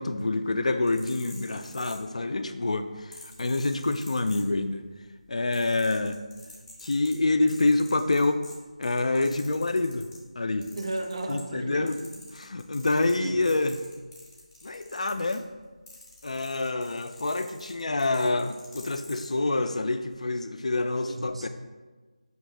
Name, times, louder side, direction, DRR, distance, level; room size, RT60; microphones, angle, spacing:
voice 1, 0.0-4.9 5.3-6.2 6.8-8.4 8.8-10.1 10.4-10.7 11.3-12.0 12.4-13.8 14.6-15.4 16.2-21.5, left 2 dB, 60° left, 9 dB, 0.3 m, -27 dB
sound 1, 0.7-2.4 3.1-4.9 5.2-10.2 10.6-11.6 11.9-19.3 20.0-20.2, left 2 dB, 5° left, 0.6 m, -48 dB
voice 2, 10.7-12.3 12.8-13.4 21.1-21.5, right 2 dB, 45° right, 5 dB, 0.4 m, -35 dB
5.3 x 2.8 x 3.2 m, 1.3 s
figure-of-eight pair, 160°, 4 cm